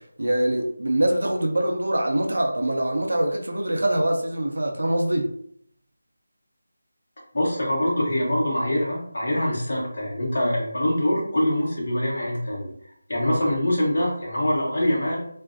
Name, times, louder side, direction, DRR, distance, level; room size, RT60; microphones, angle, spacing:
voice 1, 0.2-5.3, right 1 dB, 85° right, 2 dB, 0.5 m, -24 dB
voice 2, 7.3-12.7 13.1-15.2, left 1 dB, 40° left, -5 dB, 0.9 m, -24 dB
2.4 x 2.1 x 2.4 m, 0.68 s
figure-of-eight pair, 180°, 0 cm